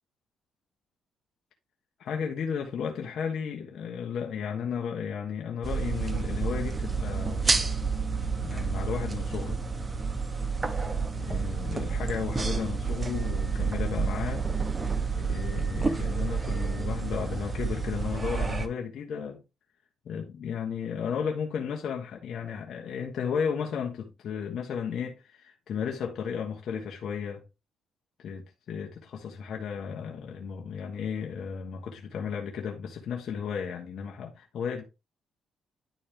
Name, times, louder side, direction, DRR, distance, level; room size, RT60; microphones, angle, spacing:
voice 1, 2.0-7.6 8.4-9.6 11.2-14.5 15.2-19.4 20.0-27.4 28.2-34.8, left 7 dB, 65° left, 1.4 m, -34 dB
sound 1, 5.6-18.7, right 4 dB, 25° right, 1.1 m, -29 dB
10.5 x 4.3 x 3.7 m
cardioid pair, 90°, 0 cm